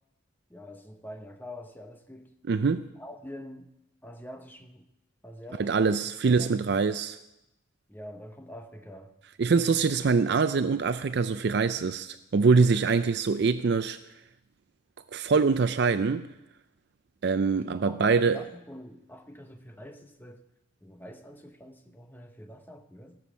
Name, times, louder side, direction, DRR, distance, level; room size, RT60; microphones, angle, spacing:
voice 1, 0.5-2.4 3.0-3.7 4.0-4.9 5.2-6.0 6.3-6.6 7.9-9.2 17.6-20.5 20.8-23.2, equal, 10° left, 0.8 m, -45 dB
voice 2, 2.5-2.8 5.6-7.2 9.4-14.0 15.1-16.3 17.2-18.4, right 4 dB, 55° right, 0.4 m, -24 dB
17.0 x 7.1 x 6.1 m
head